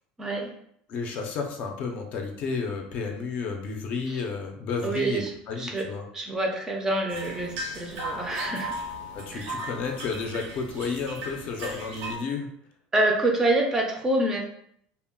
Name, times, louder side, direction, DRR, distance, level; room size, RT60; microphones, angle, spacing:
voice 1, 0.2-0.5 4.1-4.2 4.8-5.9 6.1-8.8 9.3-9.5 11.6-11.8 12.9-14.4, right 2 dB, 15° right, 1 dB, 0.4 m, -27 dB
voice 2, 0.9-6.0 9.1-12.5, left 4 dB, 45° left, 3 dB, 0.5 m, -32 dB
sound 1, 7.1-12.2, right 1 dB, 75° right, 0.6 m, -36 dB
2.2 x 2.0 x 3.6 m, 0.69 s
cardioid pair, 150°, 3 cm